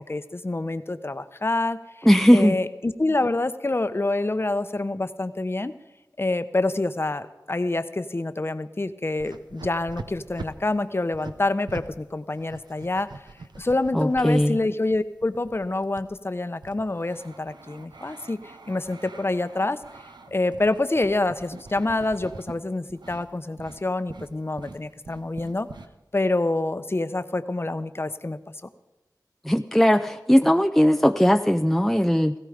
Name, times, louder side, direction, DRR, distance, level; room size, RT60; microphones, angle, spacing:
voice 1, 0.1-2.1 2.3-5.7 6.2-13.1 13.5-19.8 20.3-25.7 26.1-28.4, left 2 dB, 35° left, 11 dB, 0.9 m, -27 dB
voice 2, 2.1-2.6 13.9-14.6 29.4-32.3, equal, 5° left, 7 dB, 0.5 m, -18 dB
sound 1, 9.1-11.9 12.2-14.5 15.2-22.6 22.9-23.3 23.6-23.8 24.1-25.9, right 3 dB, 80° right, 1.0 m, -43 dB
17.0 x 16.0 x 5.1 m, 1.0 s
wide cardioid pair, 65°, 7 cm